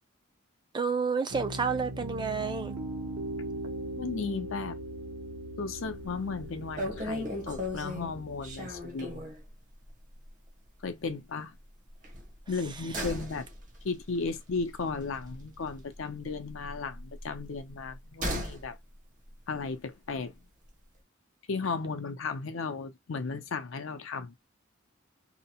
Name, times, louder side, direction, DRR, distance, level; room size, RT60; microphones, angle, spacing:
voice 1, 0.7-2.8, right 5 dB, 20° right, 0.4 m, -30 dB
Piano, 1.3-8.8, right 1 dB, 70° right, 0.9 m, -39 dB
voice 2, 4.0-4.8 5.6-9.3 10.8-11.5 12.5-13.5 13.8-18.8 19.5-20.3 21.5-24.3, left 4 dB, 70° left, 0.6 m, -35 dB
sound 1, 5.9-6.1 6.4-6.5 6.8-9.5 9.8-10.0 10.3-10.4 12.0-16.0 16.2-18.7 19.0-19.1, left 1 dB, 40° right, 0.8 m, -37 dB
2.8 x 2.0 x 2.8 m
head